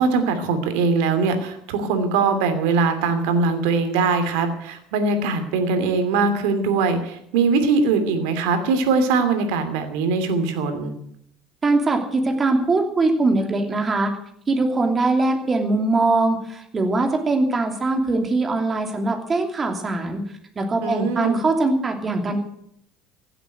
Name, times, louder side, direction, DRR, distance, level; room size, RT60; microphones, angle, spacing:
voice 1, 0.0-10.9 20.8-21.4, right 4 dB, 85° right, 8 dB, 2.7 m, -21 dB
voice 2, 11.6-14.1 14.5-20.2 20.5-22.4, right 2 dB, 25° right, 4 dB, 2.9 m, -21 dB
16.0 x 8.0 x 9.3 m, 0.71 s
cardioid pair, 125°, 0 cm